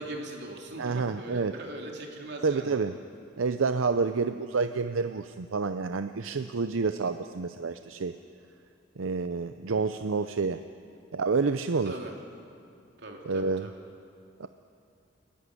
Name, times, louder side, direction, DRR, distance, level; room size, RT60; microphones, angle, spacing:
voice 1, 0.0-2.8 11.8-12.1 13.0-13.8, right 1 dB, 60° right, 1 dB, 3.1 m, -40 dB
voice 2, 0.8-1.5 2.4-3.0 3.4-8.1 9.0-10.6 11.1-11.9 13.3-13.7 14.4-14.5, right 4 dB, 85° right, 10 dB, 0.6 m, -28 dB
29.5 x 11.5 x 9.8 m, 2.5 s
head